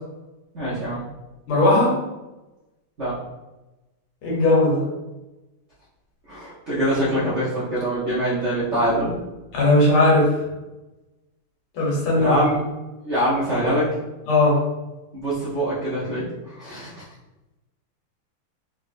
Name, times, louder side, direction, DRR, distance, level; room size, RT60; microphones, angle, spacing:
voice 1, 0.5-1.0 3.0-3.1 6.3-9.2 12.2-12.6 13.0-13.9 15.1-17.0, equal, 85° right, -10 dB, 0.6 m, -24 dB
voice 2, 1.5-2.0 4.2-4.8 9.5-10.2 11.8-12.4 14.3-14.6, left 2 dB, 75° left, -5 dB, 1.8 m, -18 dB
3.4 x 3.2 x 2.5 m, 1.0 s
omnidirectional pair, 2.4 m